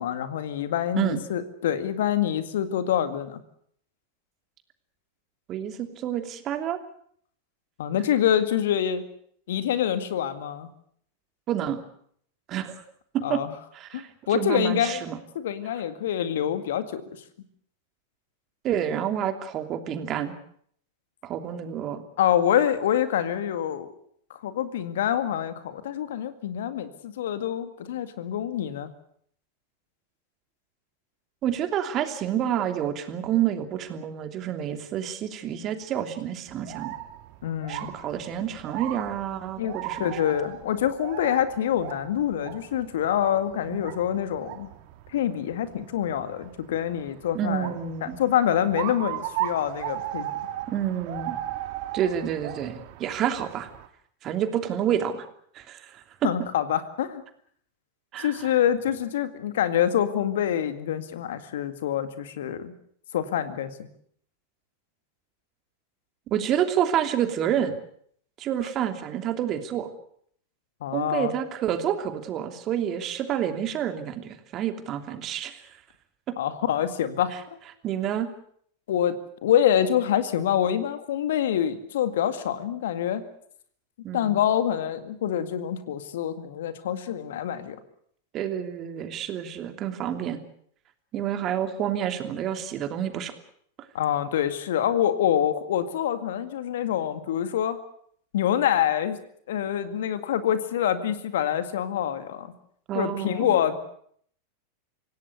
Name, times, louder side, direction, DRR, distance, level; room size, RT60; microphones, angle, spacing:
voice 1, 0.0-3.4 7.8-9.0 9.5-10.7 13.2-13.5 13.9-15.0 15.4-17.0 22.2-23.9 24.3-28.9 37.4-37.9 39.6-44.7 45.1-47.7 48.0-50.3 56.2-57.2 58.2-62.7 63.1-63.9 70.8-71.3 76.4-77.4 78.9-83.3 84.1-87.8 93.9-97.8 98.3-99.2 99.5-102.5 102.9-103.8, left 10 dB, 65° left, 11 dB, 2.0 m, -26 dB
voice 2, 5.5-6.8 11.5-11.8 12.5-12.8 13.1-13.4 13.7-15.2 18.6-20.3 21.2-22.0 31.4-36.9 37.7-40.2 43.7-43.9 47.3-48.2 50.7-51.4 51.9-53.7 54.2-55.3 55.5-55.9 56.2-56.3 58.1-58.5 66.3-67.7 68.4-69.9 70.9-75.6 76.3-76.4 77.8-78.3 84.0-84.4 88.3-90.4 91.1-93.3 102.9-103.6, right 10 dB, 40° right, 7 dB, 2.9 m, -28 dB
sound 1, 36.5-53.9, right 14 dB, 55° right, 1.9 m, -37 dB
26.5 x 17.5 x 8.0 m, 0.65 s
figure-of-eight pair, 90°, 0 cm